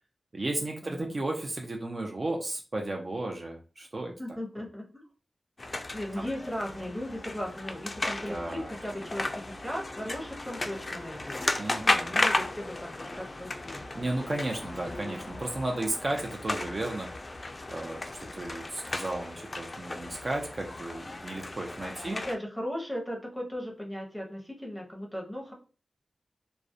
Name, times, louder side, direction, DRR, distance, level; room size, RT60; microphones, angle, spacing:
voice 1, 0.3-4.1 6.2-6.3 8.3-8.7 11.6-12.3 13.9-17.1 17.7-22.2, right 2 dB, 50° right, 1 dB, 0.5 m, -34 dB
voice 2, 4.2-5.0 5.9-11.6 11.8-14.1 22.0-25.5, equal, ahead, 0 dB, 0.8 m, -37 dB
sound 1, 5.6-22.4, left 2 dB, 40° left, 0.3 m, -34 dB
2.3 x 2.0 x 2.6 m, 0.36 s
cardioid pair, 55°, 0 cm